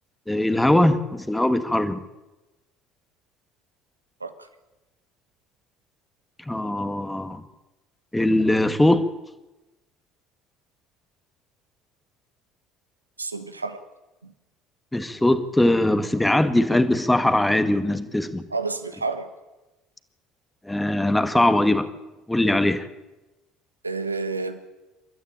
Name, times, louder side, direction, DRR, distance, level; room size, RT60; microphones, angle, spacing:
voice 1, 0.3-2.0 6.5-7.4 8.1-9.1 14.9-18.4 20.6-21.9 22.3-22.9, left 1 dB, 10° left, 10 dB, 1.9 m, -21 dB
voice 2, 13.2-13.8 14.2-14.3 18.5-19.3 23.8-24.6, right 3 dB, 90° right, 10 dB, 1.4 m, -29 dB
29.0 x 13.0 x 8.9 m, 1.1 s
figure-of-eight pair, 60°, 0 cm